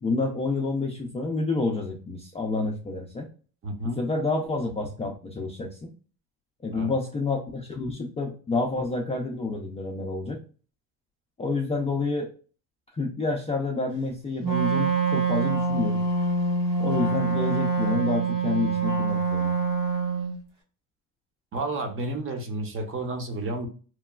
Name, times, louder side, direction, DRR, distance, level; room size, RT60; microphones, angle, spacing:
voice 1, 0.0-3.3 3.8-5.9 6.6-10.4 11.4-12.3 12.9-16.0 16.8-19.6, left 3 dB, 15° left, -1 dB, 0.3 m, -29 dB
voice 2, 3.6-4.0 6.7-6.9 21.5-23.7, right 2 dB, 30° right, 4 dB, 0.7 m, -31 dB
Wind instrument woodwind instrument, 14.4-20.4, right 4 dB, 80° right, 1.4 m, -25 dB
3.0 x 2.2 x 2.2 m, 0.39 s
cardioid pair, 115°, 42 cm